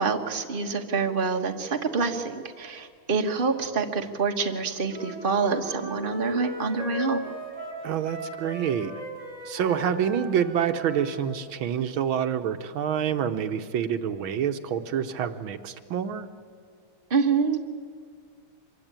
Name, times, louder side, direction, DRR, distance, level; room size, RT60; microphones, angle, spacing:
voice 1, 0.0-7.2 17.1-17.6, right 5 dB, 25° right, 4 dB, 1.5 m, -26 dB
Wind instrument woodwind instrument, 4.9-11.2, right 1 dB, 60° right, 6.6 m, -37 dB
voice 2, 7.8-8.9 9.4-16.3, right 8 dB, 75° right, 9 dB, 1.7 m, -27 dB
25.5 x 23.0 x 8.9 m, 2.1 s
omnidirectional pair, 2.3 m